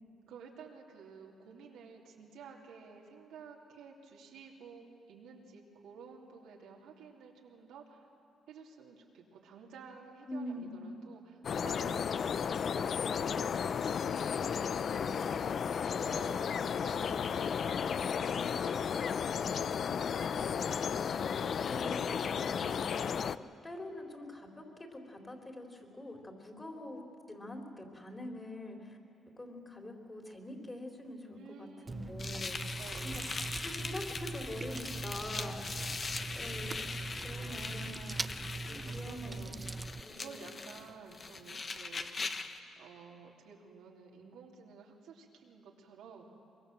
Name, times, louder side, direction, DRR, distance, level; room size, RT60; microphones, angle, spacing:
voice 1, 0.3-8.1 8.5-15.7 16.0-19.4 20.2-21.1 31.3-32.3 32.7-33.2 37.2-38.5 38.8-39.8 40.1-42.1 42.8-46.2, right 5 dB, 85° right, -1 dB, 3.1 m, -53 dB
voice 2, 10.3-10.8 21.7-27.0 27.3-29.0 29.4-32.6 33.0-35.8 36.3-36.9 37.2-38.1 38.6-39.4 40.0-40.6, left 1 dB, 20° left, 2 dB, 3.9 m, -45 dB
sound 1, 11.4-23.4, left 7 dB, 55° left, 0.5 m, -33 dB
Chewing mastication, 31.9-40.0, right 3 dB, 20° right, 0.5 m, -41 dB
sound 2, 32.2-42.6, left 4 dB, 35° left, 1.3 m, -41 dB
24.0 x 23.0 x 7.6 m, 2.5 s
cardioid pair, 90°, 0 cm